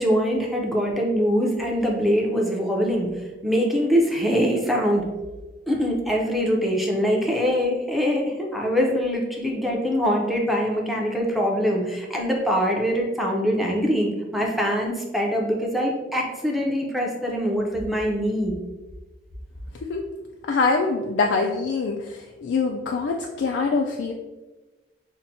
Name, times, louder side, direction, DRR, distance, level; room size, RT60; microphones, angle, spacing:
voice 1, 0.0-5.0 5.7-18.5, equal, ahead, -1 dB, 0.5 m, -23 dB
voice 2, 20.5-24.1, left 4 dB, 85° left, 2 dB, 0.3 m, -24 dB
5.6 x 2.1 x 2.6 m, 1.2 s
head